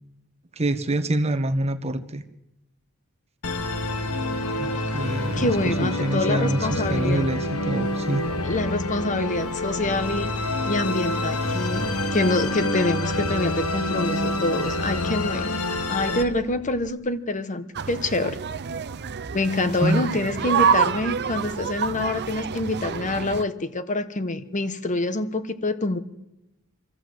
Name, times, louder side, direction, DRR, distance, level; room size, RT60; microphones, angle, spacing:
voice 1, 0.6-2.2 4.6-8.3 19.8-20.1, right 1 dB, 30° right, 7 dB, 1.2 m, -26 dB
Musical instrument, 3.4-16.2, left 1 dB, 70° left, 1.6 m, -27 dB
voice 2, 5.3-7.3 8.4-10.4 10.7-15.5 15.9-18.4 19.3-26.0, left 2 dB, 35° left, 11 dB, 1.2 m, -26 dB
Car / Engine starting, 11.5-16.9, left 2 dB, 85° left, 1.8 m, -46 dB
sound 1, 17.7-23.4, right 7 dB, 50° right, 0.7 m, -27 dB
26.0 x 14.0 x 7.9 m, 0.95 s
head